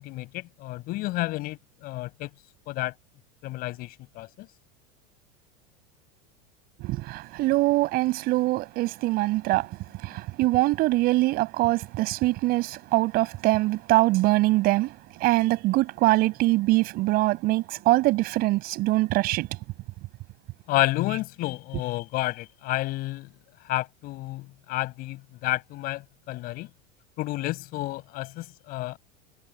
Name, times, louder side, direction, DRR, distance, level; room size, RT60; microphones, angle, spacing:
voice 1, 0.0-2.3 2.7-2.9 3.4-4.5 20.7-23.3 23.6-26.7 27.2-29.0, left 18 dB, 45° left, 5.1 m, -30 dB
voice 2, 6.8-19.5, right 19 dB, 45° right, 6.0 m, -23 dB
supercardioid pair, 140°, 21 cm